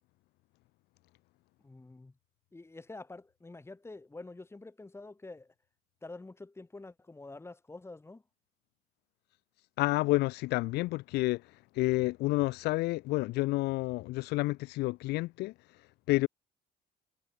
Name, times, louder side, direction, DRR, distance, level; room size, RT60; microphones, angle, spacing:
voice 1, 1.6-2.1 2.5-5.5 6.0-8.2, left 2 dB, 15° left, 6.9 m, -47 dB
voice 2, 9.8-11.4 11.7-15.5 16.1-16.3, left 20 dB, 80° left, 0.4 m, -29 dB
cardioid pair, 110°, 17 cm